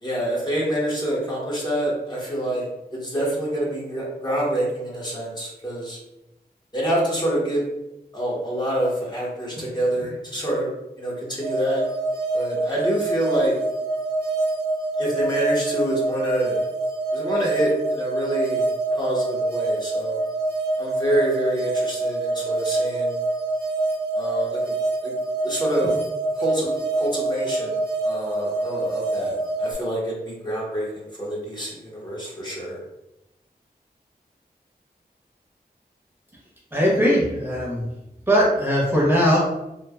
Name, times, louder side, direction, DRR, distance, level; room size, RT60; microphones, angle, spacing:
voice 1, 0.0-2.6 2.9-6.0 6.7-7.6 8.1-10.7 11.0-11.8 12.3-13.5 15.0-16.6 17.1-18.6 18.9-20.2 20.8-23.1 24.1-24.7 25.0-25.1 25.4-26.0 26.4-27.8 28.0-32.8, right 1 dB, 25° left, -5 dB, 0.9 m, -26 dB
sound 1, 11.4-29.7, right 2 dB, 80° right, 0.6 m, -26 dB
voice 2, 36.7-37.9 38.3-39.4, equal, 15° right, -5 dB, 0.8 m, -19 dB
3.1 x 2.1 x 2.3 m, 0.91 s
wide cardioid pair, 55°, 17 cm